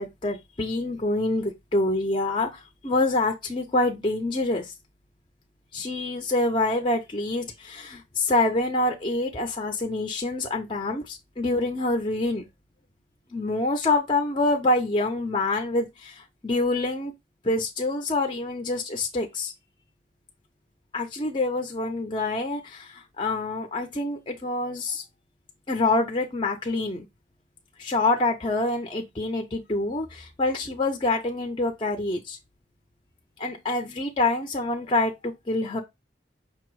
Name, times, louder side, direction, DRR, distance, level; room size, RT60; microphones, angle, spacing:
voice 1, 0.0-4.7 5.7-12.4 13.3-17.1 17.4-19.5 20.9-25.0 25.7-27.1 27.8-32.4 33.4-35.8, left 2 dB, 30° left, 0.6 m, -26 dB
5.4 x 2.0 x 4.6 m
head